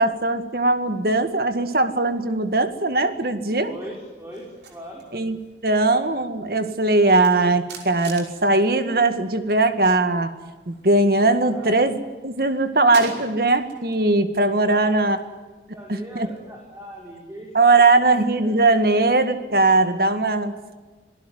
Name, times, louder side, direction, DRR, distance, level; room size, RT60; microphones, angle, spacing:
voice 1, 0.0-3.7 5.1-5.4 5.6-10.3 10.7-12.0 12.2-15.2 15.9-16.3 17.5-20.8, right 2 dB, 55° right, 9 dB, 2.0 m, -20 dB
voice 2, 3.6-5.0 11.5-11.8 14.6-14.9 15.7-18.0 18.4-18.5, equal, 15° right, -2 dB, 5.1 m, -40 dB
sound 1, 4.3-9.7 9.9-11.6 11.9-14.0 14.4-17.1, right 4 dB, 80° right, 5.5 m, -43 dB
26.5 x 18.0 x 9.6 m, 1.3 s
head